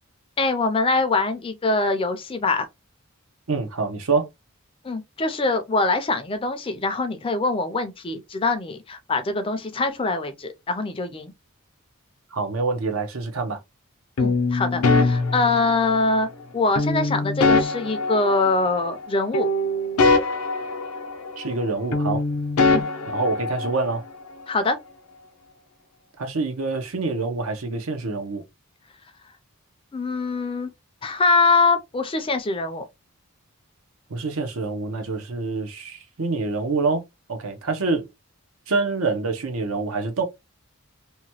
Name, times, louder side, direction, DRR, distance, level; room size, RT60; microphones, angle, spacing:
voice 1, 0.4-2.7 4.8-11.3 14.2-19.5 22.7-22.9 24.5-24.8 29.9-30.7 31.0-32.8, left 3 dB, 25° left, 0.4 m, -23 dB
voice 2, 3.5-4.3 12.3-13.6 21.4-22.2 23.1-24.0 26.2-28.4 34.1-38.1 38.7-40.2, right 3 dB, 70° right, 0.7 m, -26 dB
sound 1, 14.2-16.2 16.8-19.1 19.3-21.7 21.9-24.0, left 3 dB, 85° left, 0.6 m, -23 dB
2.9 x 2.2 x 2.8 m
head